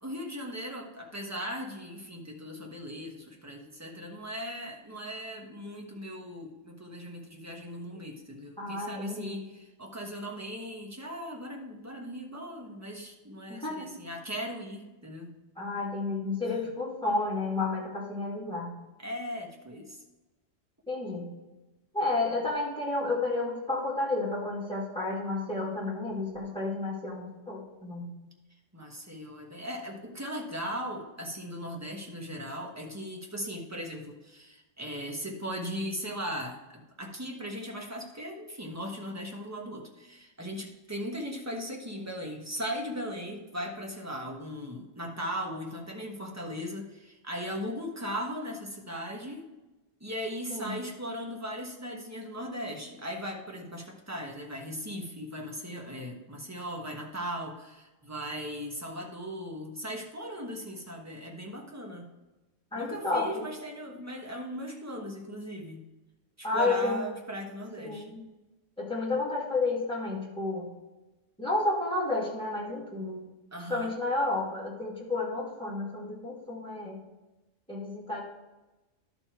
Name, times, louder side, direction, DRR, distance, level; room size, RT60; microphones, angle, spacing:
voice 1, 0.0-15.3 16.4-16.6 19.0-20.0 28.7-49.5 50.0-62.1 62.7-65.8 66.4-68.2 73.5-73.9, equal, 15° right, 0 dB, 1.2 m, -38 dB
voice 2, 8.6-9.4 13.5-13.9 15.6-18.7 20.9-21.3 21.9-28.1 50.5-50.7 62.7-63.4 66.4-67.0 67.8-68.2 68.8-70.7 71.4-73.2 73.7-77.0 77.7-78.2, left 3 dB, 5° left, -5 dB, 2.1 m, -31 dB
12.0 x 4.4 x 4.5 m, 1.1 s
omnidirectional pair, 1.3 m